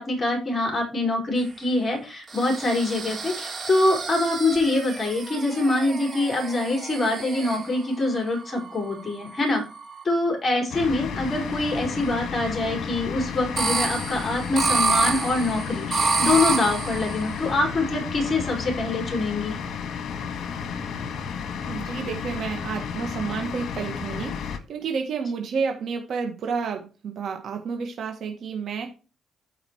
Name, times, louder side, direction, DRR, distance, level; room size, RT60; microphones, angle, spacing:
voice 1, 0.0-9.6 10.0-19.6, left 2 dB, 30° left, 1 dB, 4.9 m, -25 dB
sound 1, 2.3-7.8 8.5-10.0 13.6-17.4, right 4 dB, 40° right, 3.6 m, -28 dB
sound 2, 10.7-24.6, left 6 dB, 65° left, 1.6 m, -32 dB
voice 2, 21.6-28.9, right 5 dB, 65° right, 3 dB, 1.6 m, -30 dB
14.0 x 5.0 x 3.1 m, 0.33 s
cardioid pair, 90°, 0 cm